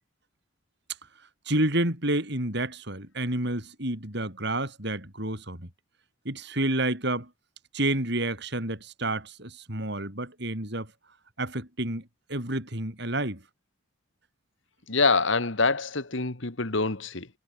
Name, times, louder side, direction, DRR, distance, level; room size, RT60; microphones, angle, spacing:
voice 1, 1.5-5.7 6.3-7.3 7.7-10.9 11.4-13.4, right 1 dB, 55° right, 7.1 m, -29 dB
voice 2, 14.9-17.3, left 4 dB, 70° left, 2.0 m, -25 dB
head